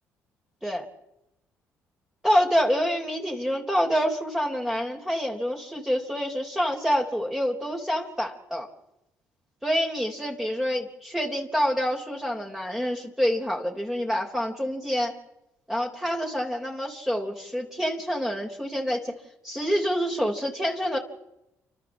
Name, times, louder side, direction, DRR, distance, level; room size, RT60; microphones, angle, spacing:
voice 1, 2.2-8.7 9.6-15.1 15.7-19.1 19.4-21.0, equal, 5° right, 0 dB, 3.8 m, -27 dB
29.5 x 12.0 x 7.4 m, 0.87 s
supercardioid pair, 65°, 6 cm